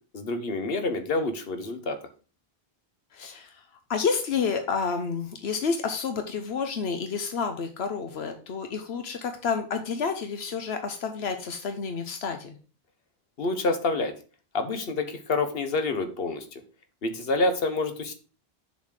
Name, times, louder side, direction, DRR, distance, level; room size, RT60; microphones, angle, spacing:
voice 1, 0.1-2.0 13.4-14.1 14.5-16.6 17.0-18.1, left 3 dB, 70° left, 8 dB, 1.3 m, -27 dB
voice 2, 3.1-12.6, left 5 dB, 90° left, 6 dB, 1.1 m, -30 dB
7.0 x 4.1 x 6.4 m, 0.36 s
omnidirectional pair, 1.0 m